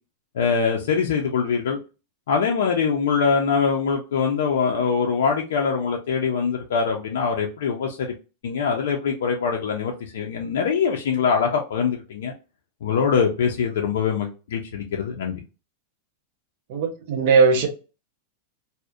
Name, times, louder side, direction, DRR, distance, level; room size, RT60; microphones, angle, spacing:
voice 1, 0.3-1.8 2.3-8.1 8.4-12.3 12.8-15.4, left 6 dB, 80° left, 0.4 m, -23 dB
voice 2, 16.7-17.7, right 5 dB, 45° right, 0.6 m, -18 dB
2.6 x 2.0 x 2.3 m
supercardioid pair, 175°, 0 cm